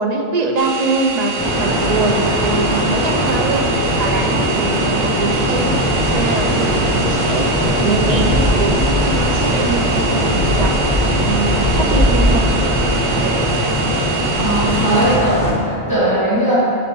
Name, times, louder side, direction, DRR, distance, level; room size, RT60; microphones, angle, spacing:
voice 1, 0.0-3.7 4.0-5.8 6.1-10.7 11.2-12.5 13.0-13.4, right 3 dB, 50° right, 1 dB, 0.6 m, -22 dB
sound 1, 0.6-15.2, right 6 dB, 65° right, 1.0 m, -26 dB
sound 2, 1.4-15.5, equal, 5° left, 1.4 m, -18 dB
voice 2, 14.4-16.6, right 1 dB, 20° right, -9 dB, 0.9 m, -18 dB
10.5 x 4.1 x 3.0 m, 2.7 s
omnidirectional pair, 1.1 m